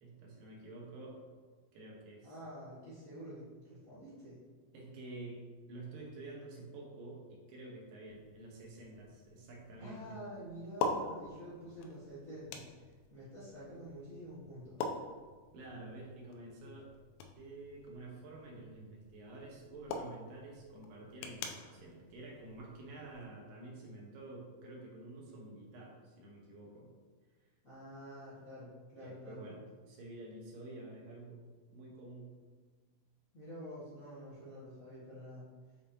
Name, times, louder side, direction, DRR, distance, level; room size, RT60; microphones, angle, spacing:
voice 1, 0.0-1.2 1.7-2.4 4.7-10.2 15.5-16.9 17.4-26.9 29.0-31.4 31.7-32.4, right 2 dB, 75° right, -2 dB, 2.8 m, -49 dB
voice 2, 2.2-4.4 9.8-12.6 13.1-14.8 27.6-29.4 33.3-35.4, equal, 40° left, -12 dB, 1.2 m, -48 dB
sound 1, 8.1-23.3, left 3 dB, 85° left, 2.3 m, -45 dB
7.0 x 5.2 x 2.9 m, 1.4 s
omnidirectional pair, 4.2 m